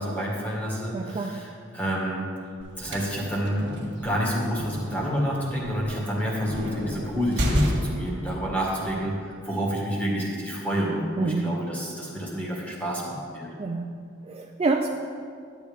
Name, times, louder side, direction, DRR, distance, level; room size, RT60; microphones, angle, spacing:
voice 1, 0.0-2.3 2.8-13.5, equal, 10° left, -4 dB, 1.8 m, -29 dB
voice 2, 0.9-1.5 11.2-11.6 13.6-14.0 14.3-14.9, right 3 dB, 30° right, 3 dB, 0.3 m, -27 dB
sound 1, 2.6-8.2, equal, 55° right, 1.7 m, -30 dB
11.0 x 8.5 x 3.6 m, 2.3 s
head